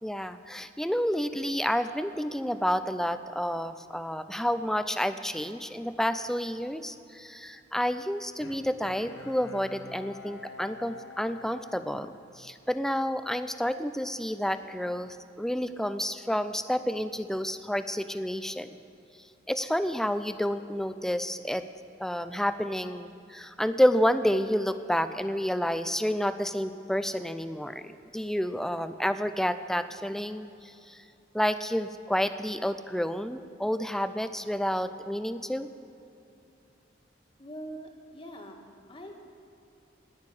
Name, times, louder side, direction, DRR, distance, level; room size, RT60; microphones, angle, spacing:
voice 1, 0.0-18.8 19.5-21.7 22.0-31.0 31.3-35.7, equal, 5° left, 11 dB, 0.4 m, -30 dB
Bowed string instrument, 8.4-12.9 13.3-13.4, left 4 dB, 70° left, 1.2 m, -47 dB
voice 2, 37.4-39.2, right 1 dB, 30° left, 2 dB, 1.7 m, -43 dB
18.0 x 6.6 x 9.7 m, 2.8 s
head